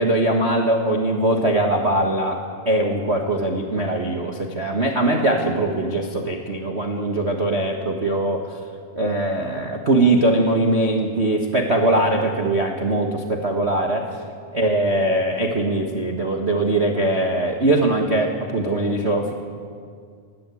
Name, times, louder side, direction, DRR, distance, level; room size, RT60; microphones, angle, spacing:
voice 1, 0.0-2.4 2.6-8.6 8.9-14.1 14.5-19.3, right 2 dB, 55° right, 2 dB, 0.7 m, -21 dB
20.0 x 15.5 x 8.5 m, 2.1 s
omnidirectional pair, 3.8 m